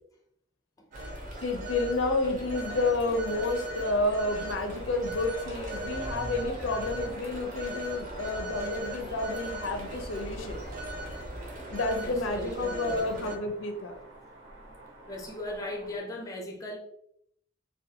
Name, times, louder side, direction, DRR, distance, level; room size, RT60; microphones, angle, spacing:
Telephone, 0.9-13.4, right 1 dB, 45° right, 0.6 m, -38 dB
voice 1, 1.4-10.6 11.7-13.9, left 2 dB, 85° left, 5 dB, 0.5 m, -30 dB
sound 1, 2.6-16.0, right 2 dB, 75° right, 0.8 m, -51 dB
voice 2, 12.0-13.0 15.1-16.8, left 1 dB, 20° left, 0 dB, 0.5 m, -38 dB
2.4 x 2.2 x 2.7 m, 0.72 s
head